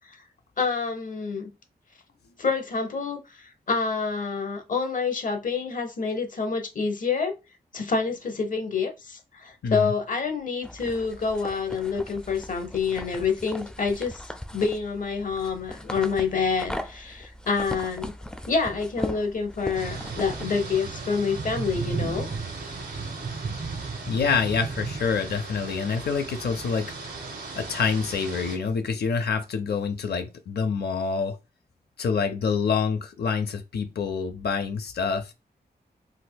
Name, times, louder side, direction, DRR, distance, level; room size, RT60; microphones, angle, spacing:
voice 1, 0.6-1.5 2.4-7.3 7.7-14.2 14.5-18.2 18.5-22.3, left 5 dB, 50° left, 0.8 m, -27 dB
voice 2, 9.6-9.9 24.1-27.2 27.5-31.4 32.0-35.3, left 5 dB, 75° left, 0.5 m, -27 dB
sound 1, 10.6-20.4, left 1 dB, 5° left, 0.3 m, -38 dB
sound 2, 19.7-28.6, right 4 dB, 85° right, 1.3 m, -35 dB
4.1 x 2.6 x 2.2 m
wide cardioid pair, 95°, 17 cm